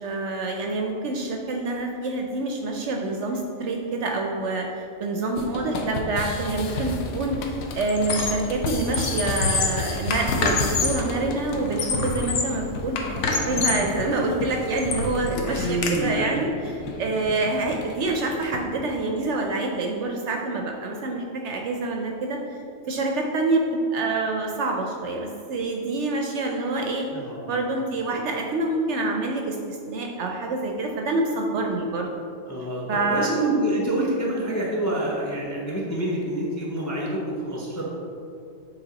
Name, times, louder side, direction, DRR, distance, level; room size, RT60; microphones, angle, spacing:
voice 1, 0.0-4.7 5.0-22.4 22.9-23.6 23.9-27.0 27.4-32.1 32.9-33.3, right 2 dB, 65° right, 1 dB, 0.8 m, -27 dB
sound 1, 5.4-18.7, left 3 dB, 80° left, 1.1 m, -33 dB
Squeak, 6.7-7.0 7.3-8.5 8.8-11.1 11.6-12.6 13.0-13.9 14.4-16.0, left 3 dB, 60° left, 1.0 m, -27 dB
voice 2, 15.6-16.3 27.1-27.5 32.5-32.8 33.1-37.9, right 1 dB, 20° left, -3 dB, 0.5 m, -27 dB
7.1 x 3.4 x 4.0 m, 2.6 s
omnidirectional pair, 1.5 m